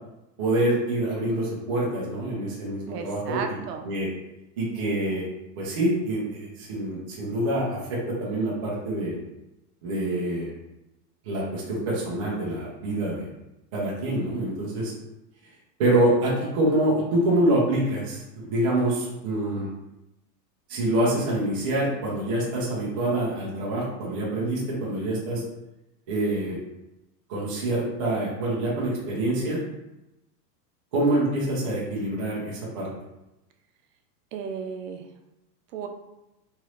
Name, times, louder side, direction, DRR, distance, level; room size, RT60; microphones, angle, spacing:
voice 1, 0.4-3.4 3.8-4.1 4.6-5.3 5.6-9.2 9.8-10.5 11.2-13.3 13.7-14.9 15.8-19.7 20.7-25.4 26.1-26.6 27.3-29.6 30.9-32.9, right 1 dB, 25° right, -5 dB, 0.3 m, -26 dB
voice 2, 2.9-3.9 34.3-35.0 35.7-35.9, right 6 dB, 70° right, 5 dB, 0.6 m, -34 dB
3.0 x 2.5 x 3.0 m, 0.93 s
supercardioid pair, 155°, 50 cm